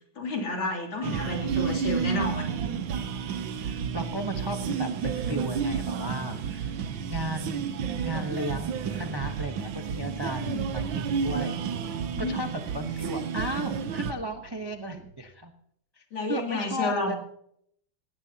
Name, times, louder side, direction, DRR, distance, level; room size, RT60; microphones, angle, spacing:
voice 1, 0.2-2.6 10.3-10.7 12.1-12.4 16.1-17.2, left 2 dB, 75° left, 1 dB, 3.8 m, -31 dB
sound 1, 1.0-14.1, right 6 dB, 75° right, 1.6 m, -31 dB
voice 2, 3.6-6.7 7.1-7.6 8.0-11.6 11.8-12.0 12.3-12.5 12.7-15.5 16.0-16.1 16.3-17.1, equal, 25° right, 5 dB, 0.5 m, -35 dB
sound 2, 10.7-15.3, right 2 dB, 50° right, 6.9 m, -48 dB
18.0 x 16.5 x 2.9 m, 0.72 s
omnidirectional pair, 2.2 m